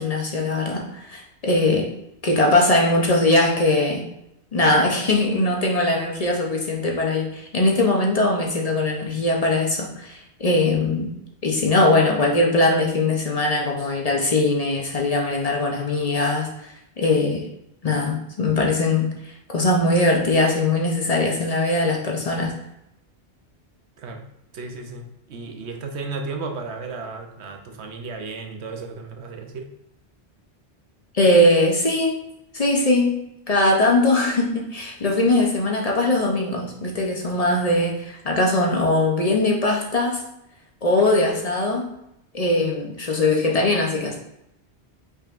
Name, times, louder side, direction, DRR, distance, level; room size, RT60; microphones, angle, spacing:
voice 1, 0.0-1.9 2.2-4.0 4.5-11.1 11.4-17.5 17.8-19.1 19.5-22.5 31.1-32.2 32.5-40.2 40.8-41.9 42.3-44.2, left 2 dB, 40° left, 0 dB, 0.7 m, -21 dB
voice 2, 24.5-29.7, right 3 dB, 90° right, 4 dB, 1.0 m, -34 dB
5.4 x 3.8 x 2.5 m, 0.83 s
omnidirectional pair, 1.1 m